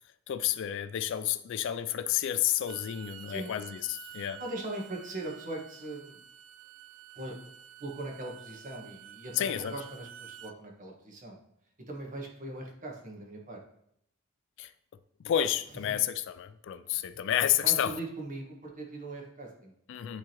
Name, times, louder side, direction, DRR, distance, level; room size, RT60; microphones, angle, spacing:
voice 1, 0.3-4.4 9.3-9.7 14.6-14.7 15.2-17.9 19.9-20.2, left 11 dB, 60° left, 13 dB, 0.3 m, -30 dB
Bowed string instrument, 2.5-10.6, right 11 dB, 70° right, 0.4 m, -50 dB
voice 2, 4.4-6.2 7.1-7.4 7.8-11.4 11.9-13.6 16.8-17.0 17.6-19.7, right 2 dB, 40° right, 0 dB, 1.4 m, -40 dB
10.5 x 3.7 x 2.9 m, 0.73 s
head